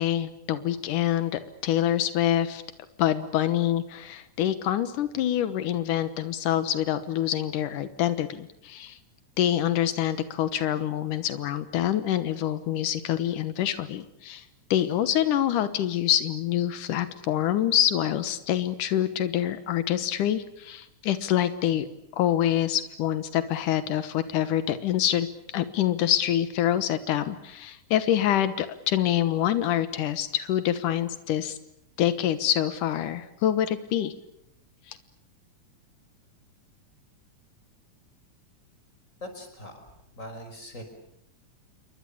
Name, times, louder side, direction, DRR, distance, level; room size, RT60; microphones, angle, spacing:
voice 1, 0.0-2.6 3.0-9.0 9.4-14.4 14.7-21.9 22.1-31.6 32.0-34.1 34.9-35.0, left 11 dB, 85° left, 12 dB, 2.7 m, -26 dB
voice 2, 39.2-40.8, left 1 dB, 25° left, 6 dB, 5.8 m, -42 dB
29.0 x 23.5 x 8.7 m, 0.78 s
omnidirectional pair, 3.5 m